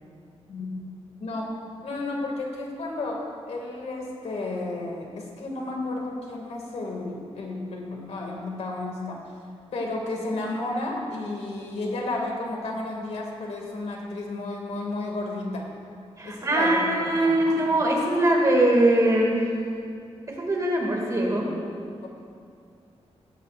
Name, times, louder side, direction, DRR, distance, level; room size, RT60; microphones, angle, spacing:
voice 1, 1.2-1.5 1.8-9.2 9.7-15.6 16.2-17.6 22.0-22.1, left 2 dB, 75° left, 0 dB, 2.2 m, -32 dB
voice 2, 16.2-19.4 20.3-21.5, right 1 dB, 30° right, -2 dB, 2.4 m, -22 dB
16.5 x 14.5 x 2.6 m, 2.4 s
wide cardioid pair, 145°, 11 cm